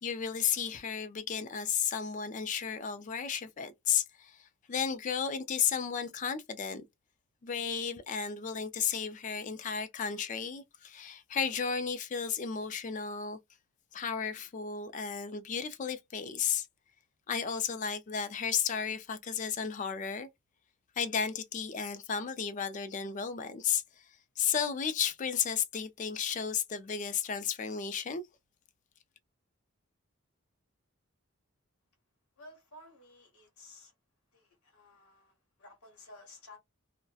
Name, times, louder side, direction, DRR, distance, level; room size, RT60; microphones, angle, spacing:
voice 1, 0.0-6.8 7.4-13.4 13.9-16.7 17.3-20.3 21.0-28.2, left 7 dB, 35° left, 0.3 m, -33 dB
voice 2, 32.4-33.9 34.3-36.6, left 2 dB, 85° left, 0.9 m, -54 dB
2.7 x 2.1 x 2.3 m
head